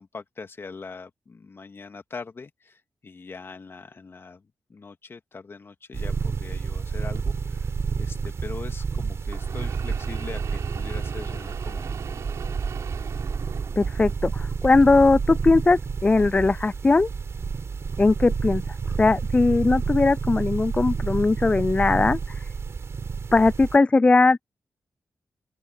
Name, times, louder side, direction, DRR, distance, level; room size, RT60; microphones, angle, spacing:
voice 1, 0.0-12.3, left 4 dB, 50° left, 2.3 m, -42 dB
sound 1, 5.9-23.8, right 5 dB, 60° right, 3.9 m, -30 dB
sound 2, 7.1-7.2 9.2-14.3 14.6-15.4 16.2-16.3 17.3-17.4, right 7 dB, 85° right, 6.7 m, -41 dB
voice 2, 13.8-17.1 18.0-18.6 19.0-22.2 23.3-24.4, left 3 dB, 25° left, 0.3 m, -19 dB
open air
cardioid pair, 65°, 5 cm